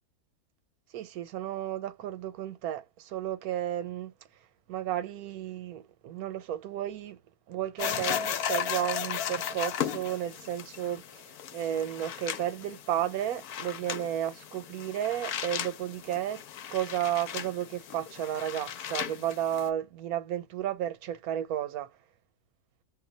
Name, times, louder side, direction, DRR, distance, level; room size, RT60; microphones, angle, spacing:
voice 1, 0.9-4.1 4.7-7.2 7.5-16.4 16.7-21.9, right 11 dB, 80° right, 1.1 m, -33 dB
sound 1, 7.8-19.7, left 9 dB, 85° left, 1.1 m, -36 dB
2.7 x 2.2 x 3.9 m
omnidirectional pair, 1.6 m